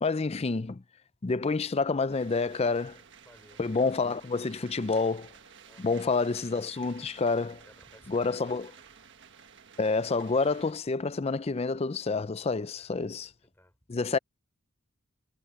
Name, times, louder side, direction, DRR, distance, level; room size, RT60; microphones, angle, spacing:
voice 1, 0.0-0.8 1.2-3.0 3.6-5.3 5.8-7.6 8.1-8.7 9.8-13.3 13.9-14.2, left 4 dB, 30° left, 0.4 m, -28 dB
sound 1, 2.1-10.7, right 7 dB, 55° right, 1.5 m, -53 dB
voice 2, 3.2-3.6 5.6-6.0 7.7-8.8 12.7-13.0 13.4-13.8, left 1 dB, 10° left, 6.1 m, -58 dB
head